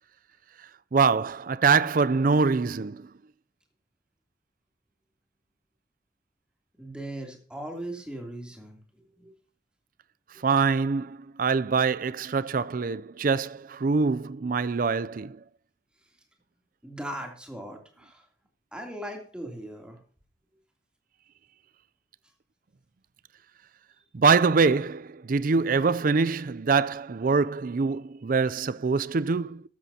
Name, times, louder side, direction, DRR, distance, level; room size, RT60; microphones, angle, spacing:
voice 1, 0.9-3.1 10.4-15.4 24.1-29.6, right 4 dB, 45° right, 0.4 m, -24 dB
voice 2, 6.8-9.4 10.3-10.4 16.8-18.3 18.7-20.0, right 1 dB, 5° right, 3.0 m, -39 dB
13.5 x 13.5 x 2.8 m
head